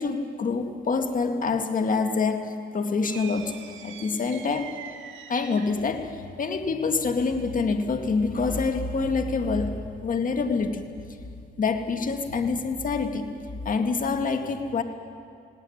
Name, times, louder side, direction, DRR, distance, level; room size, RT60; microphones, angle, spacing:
voice 1, 0.0-3.6 3.8-4.7 5.3-9.7 10.0-10.8 11.6-13.3 13.6-14.8, left 4 dB, 40° left, 6 dB, 2.0 m, -26 dB
sound 1, 3.0-5.9, right 8 dB, 75° right, 1.8 m, -43 dB
19.5 x 17.5 x 9.9 m, 2.3 s
cardioid pair, 90°, 20 cm